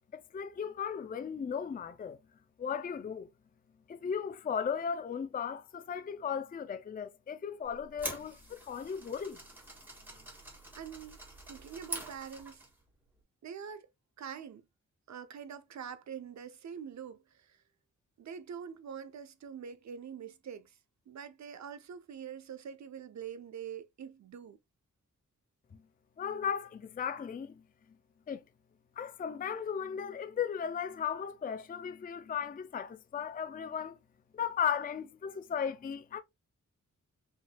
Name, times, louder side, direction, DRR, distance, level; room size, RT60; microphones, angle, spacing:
voice 1, 0.3-2.2 2.6-3.3 3.9-9.4 26.2-27.6 28.3-28.4 29.0-34.0 34.3-36.2, left 7 dB, 30° left, 0.4 m, -36 dB
sound 1, 7.7-12.8, right 1 dB, 5° right, 1.8 m, -45 dB
voice 2, 10.8-11.2 11.5-12.6 13.4-13.9 14.2-14.7 15.1-17.6 18.2-20.8 21.1-24.6, right 7 dB, 65° right, 0.7 m, -45 dB
5.1 x 3.7 x 2.2 m
wide cardioid pair, 140°, 30 cm